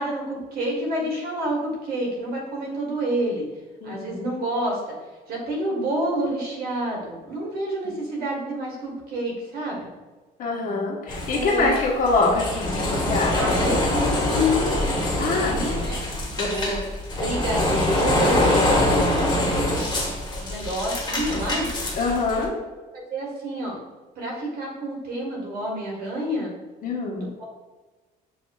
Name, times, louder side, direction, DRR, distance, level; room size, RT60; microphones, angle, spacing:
voice 1, 0.0-3.5 3.8-5.0 5.3-9.8 11.3-11.8 13.3-16.0 16.5-16.8 17.1-21.7 22.4-22.5 22.9-23.8 24.1-26.6 27.4-27.5, equal, 60° right, -2 dB, 1.5 m, -29 dB
voice 2, 3.8-4.3 7.8-7.9 10.4-13.7 15.2-15.6 16.4-16.8 22.0-22.5 26.8-27.2, left 3 dB, 55° left, -1 dB, 1.1 m, -25 dB
sound 1, 11.1-22.5, left 1 dB, 25° left, 1.3 m, -24 dB
7.1 x 2.7 x 2.3 m, 1.3 s
cardioid pair, 110°, 17 cm